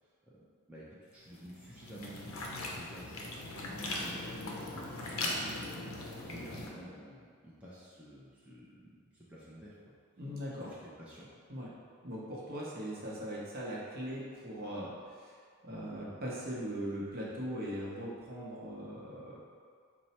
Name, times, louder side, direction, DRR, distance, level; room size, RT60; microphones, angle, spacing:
voice 1, 0.0-0.4 0.7-5.9 6.2-9.9 10.6-11.3, equal, 5° right, -9 dB, 0.5 m, -51 dB
sound 1, 1.2-6.7, left 2 dB, 75° left, 0.6 m, -39 dB
voice 2, 10.2-10.7 11.5-11.7 12.0-19.4, equal, 45° right, -5 dB, 0.8 m, -40 dB
4.5 x 2.0 x 4.1 m, 2.1 s
head